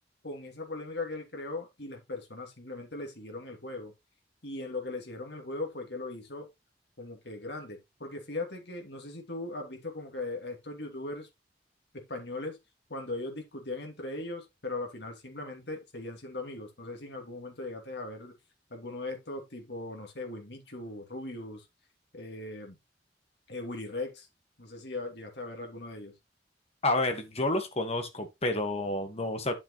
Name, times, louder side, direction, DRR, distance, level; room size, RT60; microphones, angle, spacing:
voice 1, 0.2-3.9 4.4-6.5 7.0-11.3 11.9-12.6 12.9-18.3 18.7-21.6 22.1-22.8 23.5-24.3 24.6-26.1, left 2 dB, 70° left, 2.8 m, -39 dB
voice 2, 26.8-29.6, left 2 dB, 35° left, 1.7 m, -29 dB
9.3 x 7.2 x 3.1 m
head